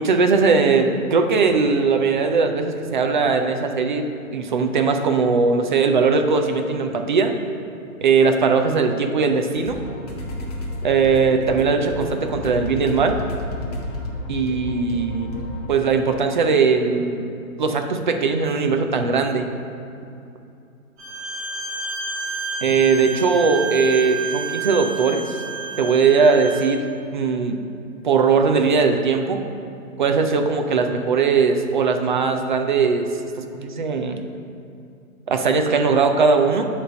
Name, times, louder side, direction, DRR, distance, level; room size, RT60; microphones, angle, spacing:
voice 1, 0.0-4.1 4.3-7.3 8.0-9.8 10.8-13.2 14.3-15.3 15.7-17.3 17.6-19.5 22.6-25.4 25.8-27.6 28.0-29.4 30.0-33.1 33.5-34.2 35.3-36.7, right 5 dB, 35° right, 5 dB, 0.4 m, -19 dB
sound 1, 9.5-15.7, left 1 dB, 30° left, 0.8 m, -31 dB
Bowed string instrument, 21.0-26.7, right 4 dB, 20° right, 1.2 m, -30 dB
8.1 x 3.2 x 6.2 m, 2.6 s
hypercardioid pair, 150°, 42 cm